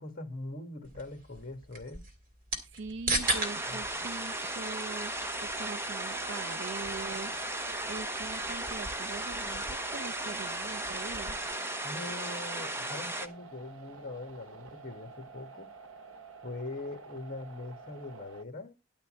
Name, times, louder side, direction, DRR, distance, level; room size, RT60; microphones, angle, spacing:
voice 1, 0.0-2.1 3.7-3.8 11.8-15.7 16.4-18.8, left 2 dB, 40° left, 2.0 m, -42 dB
sound 1, 0.8-11.5, right 2 dB, 40° right, 2.5 m, -39 dB
voice 2, 2.7-7.4 7.9-11.4, right 4 dB, 60° right, 0.5 m, -42 dB
sound 2, 3.2-13.3, right 1 dB, 10° right, 0.8 m, -36 dB
sound 3, 5.1-18.4, right 4 dB, 80° right, 1.1 m, -50 dB
11.5 x 4.4 x 7.5 m
head